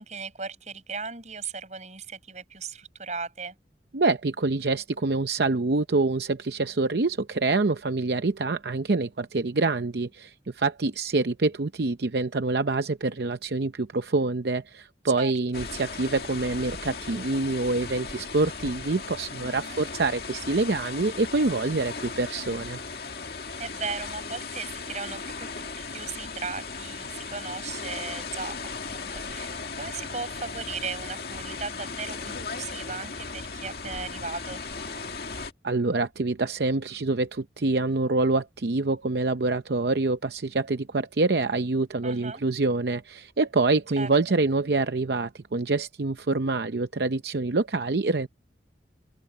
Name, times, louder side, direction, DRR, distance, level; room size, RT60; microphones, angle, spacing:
voice 1, 0.0-3.6 15.2-15.3 19.4-19.8 23.6-28.5 28.9-34.6 42.0-42.4 44.0-44.1, right 4 dB, 40° right, 6.2 m, -37 dB
voice 2, 3.9-22.8 35.6-48.3, right 3 dB, 65° right, 0.7 m, -26 dB
sound 1, 15.5-35.5, left 4 dB, 55° left, 2.2 m, -37 dB
open air
head